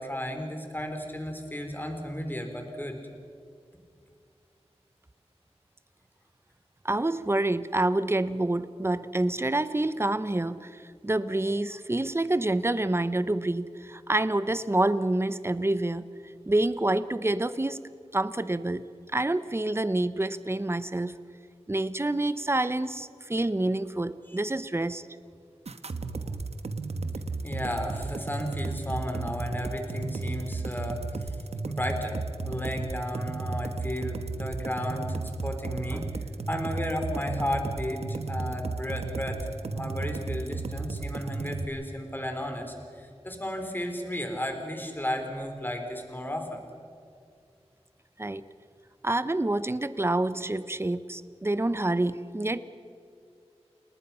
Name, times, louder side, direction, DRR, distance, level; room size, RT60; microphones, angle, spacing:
voice 1, 0.0-3.0 27.4-31.3 31.6-32.2 32.4-36.1 36.5-46.6, left 1 dB, 20° left, 4 dB, 3.9 m, -34 dB
voice 2, 6.8-16.0 16.5-17.8 18.1-18.9 19.1-21.1 21.7-25.0 35.9-36.0 48.2-48.4 49.0-52.6, right 2 dB, 20° right, 14 dB, 0.9 m, -27 dB
sound 1, 25.6-41.6, right 3 dB, 75° right, 1.2 m, -34 dB
29.0 x 19.5 x 5.7 m, 2.4 s
wide cardioid pair, 70°, 11 cm